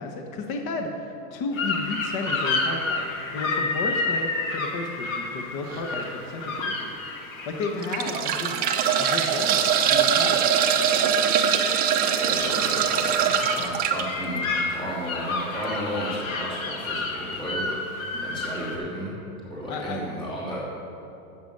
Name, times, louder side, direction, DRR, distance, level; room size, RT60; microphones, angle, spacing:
voice 1, 0.0-7.0 7.5-8.6 9.0-11.1 19.7-20.0, left 3 dB, 35° left, 4 dB, 1.2 m, -33 dB
sound 1, 1.5-18.8, left 3 dB, 60° left, 2.3 m, -31 dB
sound 2, 5.7-5.9 6.6-6.7 7.6-14.0 15.6-15.7 16.0-16.1, right 8 dB, 20° right, 0.7 m, -22 dB
voice 2, 12.2-17.8 18.1-19.1 19.5-20.6, equal, 10° left, -6 dB, 2.6 m, -33 dB
12.5 x 8.2 x 6.6 m, 3.0 s
supercardioid pair, 145°, 44 cm